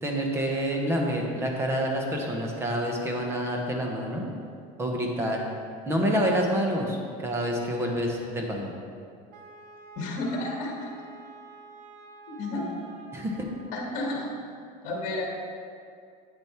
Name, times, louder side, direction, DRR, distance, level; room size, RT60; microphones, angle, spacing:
voice 1, 0.0-4.3 4.8-5.4 5.9-8.7 13.1-13.5, equal, 15° right, 0 dB, 0.9 m, -27 dB
Wind instrument woodwind instrument, 9.3-13.9, right 4 dB, 45° right, 0.7 m, -48 dB
voice 2, 10.0-10.9 12.3-12.7 13.7-14.3 14.8-15.2, left 2 dB, 40° left, -1 dB, 1.7 m, -31 dB
8.9 x 6.8 x 4.4 m, 2.3 s
cardioid pair, 180°, 19 cm